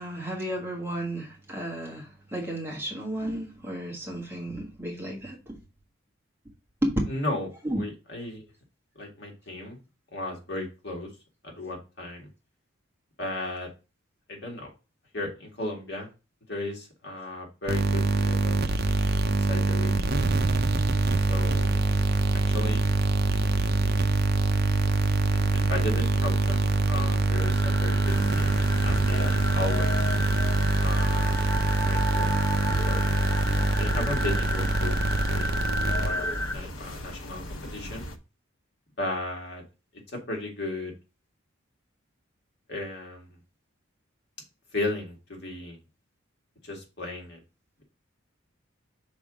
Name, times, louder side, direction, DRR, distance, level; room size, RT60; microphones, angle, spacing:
voice 1, 0.0-5.6 6.8-7.0 7.6-7.8, right 1 dB, 10° right, 1.5 m, -32 dB
voice 2, 7.1-7.5 7.7-8.5 9.0-9.8 10.1-11.1 11.4-12.3 13.2-13.7 14.3-14.7 15.1-16.1 16.5-18.7 19.3-20.2 21.2-21.8 22.3-22.8 23.4-24.0 25.3-30.1 30.8-31.4 31.8-32.3 32.9-33.0 33.8-35.7 36.0-38.0 39.0-39.6 40.1-40.9 42.7-43.3 44.7-45.8 46.6-47.4, left 2 dB, 55° left, 2.1 m, -35 dB
sound 1, 17.7-36.5, right 3 dB, 50° right, 0.6 m, -24 dB
sound 2, 27.3-36.5, equal, 10° left, 0.6 m, -33 dB
sound 3, 28.0-38.2, left 1 dB, 80° left, 0.9 m, -37 dB
6.0 x 3.7 x 5.0 m
head